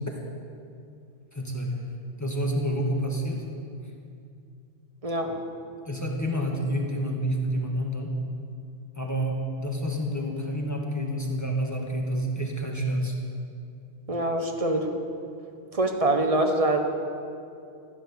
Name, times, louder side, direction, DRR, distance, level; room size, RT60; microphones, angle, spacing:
voice 1, 1.3-1.7 2.2-3.4 5.9-8.1 9.0-13.1, equal, 15° left, -1 dB, 1.9 m, -28 dB
voice 2, 5.0-5.4 14.1-14.9 15.7-16.8, right 2 dB, 30° right, 4 dB, 1.4 m, -24 dB
15.5 x 10.5 x 7.2 m, 2.4 s
omnidirectional pair, 1.2 m